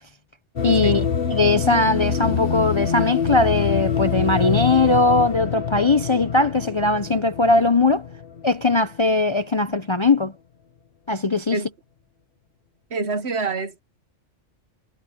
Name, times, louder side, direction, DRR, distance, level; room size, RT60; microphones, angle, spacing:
sound 1, 0.6-8.8, left 6 dB, 45° left, 1.6 m, -25 dB
voice 1, 0.6-1.1 1.3-8.1 8.4-10.3 11.1-11.6, left 3 dB, 30° left, 0.6 m, -19 dB
voice 2, 12.9-13.8, right 4 dB, 55° right, 1.4 m, -27 dB
omnidirectional pair, 1.4 m